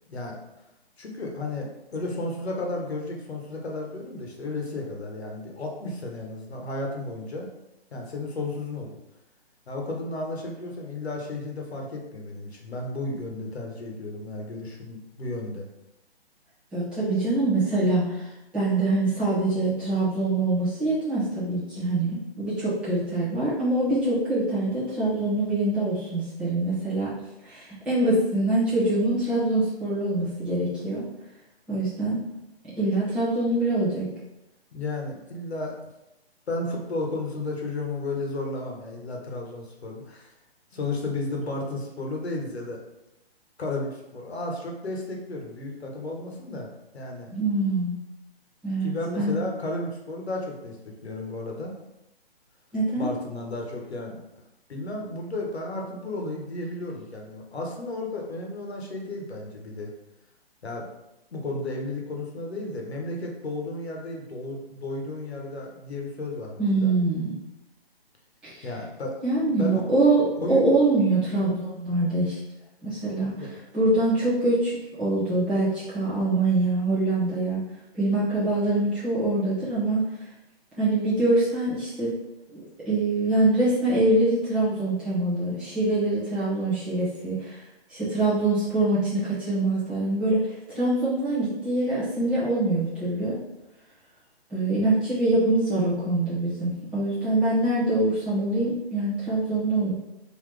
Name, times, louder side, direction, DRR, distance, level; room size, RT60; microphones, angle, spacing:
voice 1, 1.0-7.5 7.9-9.0 9.7-15.7 34.7-35.7 36.5-40.3 40.7-42.8 43.6-46.7 46.9-47.3 48.8-51.7 53.0-54.2 54.7-59.9 60.6-60.9 61.3-67.0 68.6-69.1 69.5-69.9 70.4-70.6 73.4-73.5, left 2 dB, 80° left, 1 dB, 1.2 m, -33 dB
voice 2, 16.7-18.3 18.5-27.1 27.4-31.0 31.7-32.2 32.8-34.1 47.3-48.0 48.6-49.4 52.7-53.1 66.6-67.3 68.4-68.7 69.2-72.4 72.8-73.3 73.7-77.7 78.0-80.0 80.8-82.1 82.5-87.6 87.9-90.4 90.7-93.3 94.5-99.9, right 2 dB, 5° right, -13 dB, 0.7 m, -24 dB
4.0 x 2.9 x 3.2 m, 0.92 s
hypercardioid pair, 160°, 31 cm